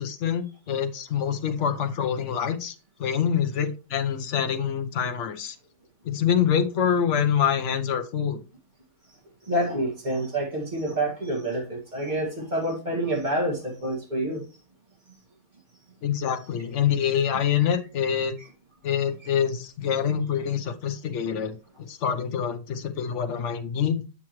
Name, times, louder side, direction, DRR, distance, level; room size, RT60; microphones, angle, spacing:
voice 1, 0.0-2.7 3.0-5.6 6.0-8.4 16.0-18.3 18.8-21.6 21.9-24.0, left 8 dB, 60° left, 1.1 m, -25 dB
voice 2, 9.5-14.4 18.4-18.5, right 1 dB, 35° right, 2.1 m, -28 dB
8.5 x 6.0 x 3.0 m
omnidirectional pair, 1.5 m